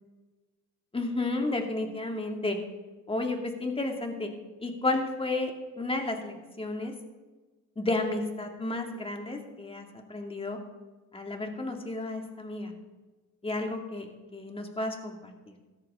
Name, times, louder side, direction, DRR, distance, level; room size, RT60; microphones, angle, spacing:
voice 1, 0.9-2.6 3.1-4.3 4.6-6.9 7.8-10.6 11.1-12.7 13.4-14.1 14.3-15.3, left 2 dB, 20° left, 3 dB, 2.5 m, -32 dB
17.0 x 13.0 x 3.8 m, 1.2 s
cardioid pair, 90°, 30 cm